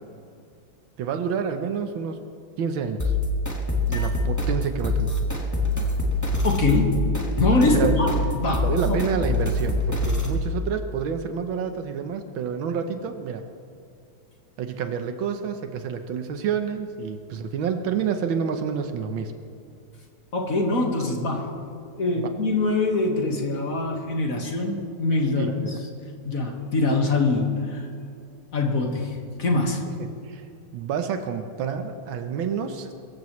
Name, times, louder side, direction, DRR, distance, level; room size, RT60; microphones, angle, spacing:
voice 1, 1.0-2.2 2.6-3.1 3.9-5.3 7.6-8.0 8.6-13.4 14.6-19.3 22.2-22.3 25.4-25.8 29.9-30.4 30.7-32.9, right 6 dB, 85° right, 7 dB, 1.7 m, -28 dB
sound 1, 3.0-10.4, left 1 dB, 10° left, 1.7 m, -25 dB
voice 2, 6.4-7.0 7.4-9.0 20.3-21.5 22.0-25.5 26.3-27.9 28.5-29.8, left 2 dB, 45° left, 1 dB, 2.0 m, -23 dB
23.0 x 15.0 x 3.2 m, 2.4 s
omnidirectional pair, 2.1 m